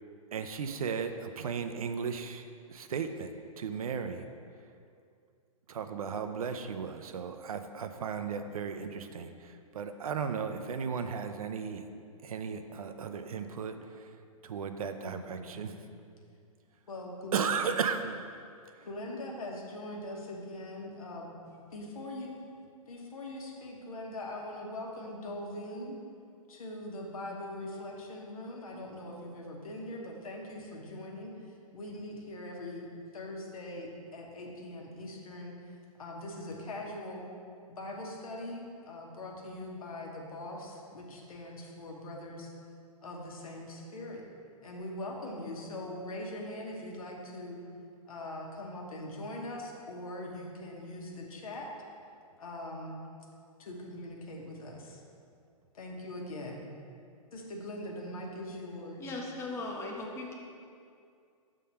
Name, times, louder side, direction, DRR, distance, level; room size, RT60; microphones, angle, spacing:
voice 1, 0.3-4.2 5.7-11.9 12.2-14.1 14.4-15.7 17.3-18.2, right 6 dB, 75° right, 8 dB, 0.5 m, -35 dB
voice 2, 15.0-15.6 16.9-17.4 18.8-21.4 21.7-22.3 22.9-26.0 26.5-32.9 33.1-37.3 37.7-42.5 43.0-44.2 44.6-47.6 48.0-51.7 52.4-53.0 53.6-55.0 55.7-56.6 57.3-59.1, left 1 dB, 75° left, 0 dB, 1.2 m, -42 dB
voice 3, 59.0-60.3, left 2 dB, 15° left, -1 dB, 0.8 m, -38 dB
6.4 x 3.7 x 5.5 m, 2.4 s
hypercardioid pair, 120°, 19 cm